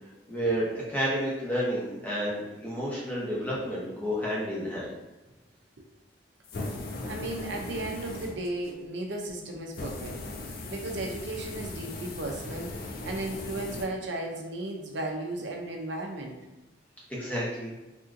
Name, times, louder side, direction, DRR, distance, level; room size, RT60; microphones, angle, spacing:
voice 1, 0.3-4.9 17.1-17.8, equal, 10° left, -7 dB, 0.9 m, -30 dB
sound 1, 6.4-8.8 9.7-13.9, left 2 dB, 50° left, 0.4 m, -38 dB
voice 2, 7.1-10.2 10.5-12.7 13.0-16.4, right 2 dB, 70° right, 1 dB, 0.6 m, -35 dB
3.4 x 2.7 x 2.5 m, 1.1 s
head